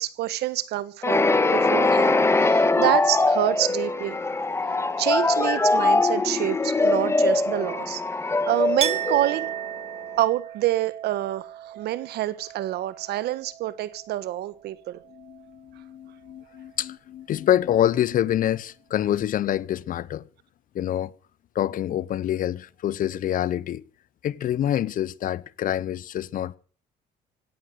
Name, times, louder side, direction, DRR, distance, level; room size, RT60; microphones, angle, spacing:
voice 1, 0.0-4.2 5.0-9.5 10.2-15.0, right 14 dB, 75° right, 1.3 m, -27 dB
sound 1, 1.0-9.8, left 2 dB, 15° left, 1.4 m, -22 dB
Chink clink, 8.8-14.3 14.6-15.5, right 10 dB, 40° right, 0.9 m, -35 dB
voice 2, 15.1-20.2 20.7-21.1 21.5-23.8 24.2-26.6, left 11 dB, 55° left, 0.7 m, -26 dB
16.5 x 10.0 x 7.9 m
cardioid pair, 110°, 17 cm